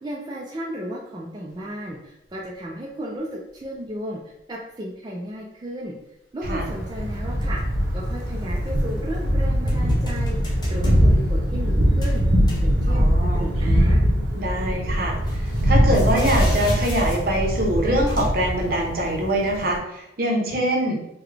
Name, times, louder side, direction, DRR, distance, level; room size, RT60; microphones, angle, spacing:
voice 1, 0.0-5.9 6.3-7.6 7.9-12.3 12.6-14.0, equal, 25° right, -3 dB, 0.3 m, -34 dB
sound 1, 1.5-1.6 2.6-2.7 3.6-3.9 7.1-7.6 8.0-9.2 9.7-11.0 12.0-13.1 13.4-13.5 15.3-17.4 18.0-18.5, left 1 dB, 25° left, 0.6 m, -38 dB
Thunder, 6.4-19.8, equal, 80° right, 0.8 m, -22 dB
voice 2, 12.9-13.5 14.4-21.0, right 1 dB, 55° right, 0 dB, 0.7 m, -24 dB
3.8 x 2.2 x 3.3 m, 0.86 s
head